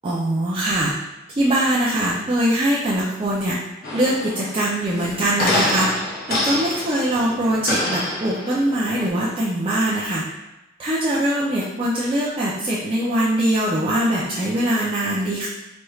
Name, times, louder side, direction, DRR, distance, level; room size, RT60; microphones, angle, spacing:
voice 1, 0.0-0.9 1.3-3.6 3.9-5.9 6.3-10.2 10.8-15.5, right 1 dB, 25° right, -7 dB, 0.5 m, -22 dB
sound 1, 3.8-9.1, left 1 dB, 50° left, 0.8 m, -27 dB
4.3 x 3.1 x 2.3 m, 1.0 s
head